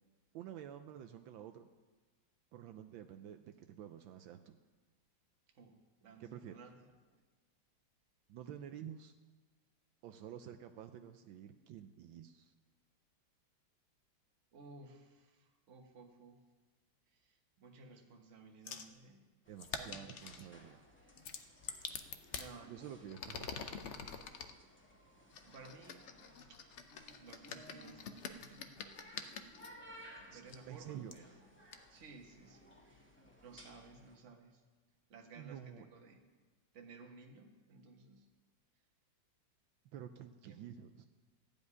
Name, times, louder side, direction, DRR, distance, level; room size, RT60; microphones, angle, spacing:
voice 1, 0.3-1.7 2.5-4.6 6.2-6.6 8.3-9.1 10.0-12.5 19.5-20.8 22.6-23.6 30.3-31.1 35.4-35.9 39.9-41.1, right 10 dB, 80° right, 8 dB, 1.3 m, -50 dB
voice 2, 5.5-7.2 14.5-16.4 17.1-19.3 19.7-20.7 21.3-21.7 22.3-23.1 25.4-26.1 26.5-26.6 27.0-29.7 30.3-31.4 31.9-34.6 35.1-36.4 36.7-38.3 40.4-40.6, right 4 dB, 40° right, 3 dB, 1.4 m, -57 dB
sound 1, 18.7-18.9 19.6-20.5 21.2-22.5 23.1-24.5 25.3-29.7 30.5-30.6 31.1-31.2 31.7-31.8, left 6 dB, 80° left, 0.6 m, -46 dB
sound 2, 19.4-34.2, equal, 5° left, 1.8 m, -60 dB
14.5 x 5.3 x 9.5 m, 1.3 s
omnidirectional pair, 2.1 m